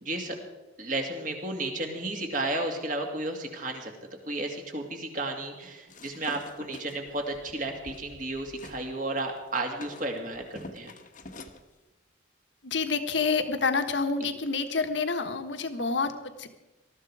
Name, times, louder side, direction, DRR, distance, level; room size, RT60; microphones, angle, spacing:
voice 1, 0.0-0.4 0.8-3.9 4.3-10.9 14.2-14.3, right 2 dB, 45° right, 3 dB, 2.5 m, -33 dB
sound 1, 5.9-8.8 9.2-11.6, left 2 dB, 40° left, 1.1 m, -46 dB
voice 2, 12.6-16.6, left 4 dB, 65° left, 8 dB, 1.4 m, -28 dB
19.5 x 13.5 x 4.9 m, 1.1 s
head